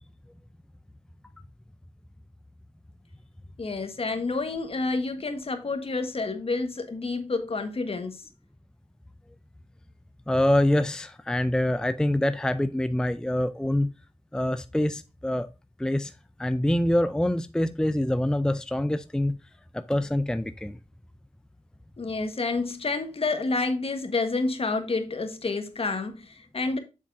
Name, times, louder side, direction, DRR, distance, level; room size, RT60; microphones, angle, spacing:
voice 1, 3.6-8.2 22.0-26.8, left 3 dB, 50° left, 1.6 m, -29 dB
voice 2, 10.3-13.9 14.3-15.5 15.8-16.1 16.4-19.4 19.7-20.8, left 1 dB, 5° left, 0.5 m, -25 dB
7.2 x 7.1 x 2.6 m
wide cardioid pair, 80°, 12 cm